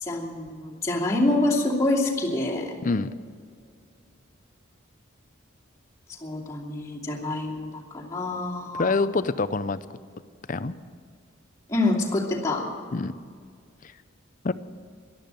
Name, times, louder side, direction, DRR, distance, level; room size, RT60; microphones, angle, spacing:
voice 1, 0.0-2.7 6.2-9.0 11.7-12.7, left 2 dB, 15° left, -5 dB, 2.7 m, -26 dB
voice 2, 8.8-9.8 10.5-10.7 12.9-13.1 14.4-14.5, left 3 dB, 40° left, 14 dB, 0.5 m, -25 dB
12.0 x 12.0 x 9.1 m, 2.1 s
head